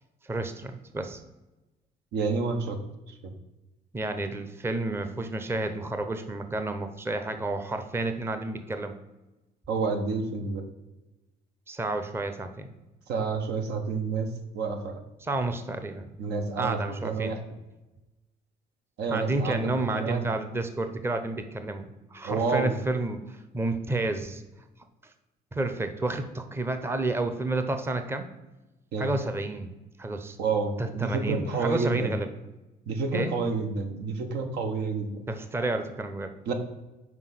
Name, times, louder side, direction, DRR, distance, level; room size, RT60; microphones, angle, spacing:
voice 1, 0.2-1.2 3.9-9.0 11.7-12.7 15.2-16.1 16.6-17.3 19.1-24.4 25.5-28.3 29.0-29.7 30.0-30.4 30.8-32.3 33.1-33.3 35.3-36.3, right 2 dB, 15° right, 8 dB, 0.7 m, -30 dB
voice 2, 2.1-2.8 3.2-3.3 9.7-10.6 13.1-14.3 14.5-15.0 16.2-17.4 19.0-20.3 22.2-22.7 28.9-29.1 30.4-32.1 32.9-35.3 36.5-36.6, right 4 dB, 80° right, 5 dB, 1.2 m, -29 dB
6.0 x 4.7 x 5.8 m, 1.1 s
cardioid pair, 110°, 17 cm